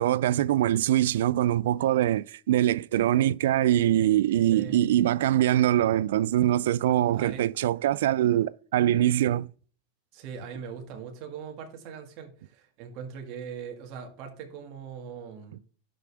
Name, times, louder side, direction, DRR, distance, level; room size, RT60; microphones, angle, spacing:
voice 1, 0.0-9.5, right 12 dB, 80° right, 0.3 m, -23 dB
voice 2, 7.1-7.7 10.1-15.6, right 6 dB, 40° right, 1.8 m, -41 dB
11.0 x 5.1 x 3.4 m
supercardioid pair, 160°, 0 cm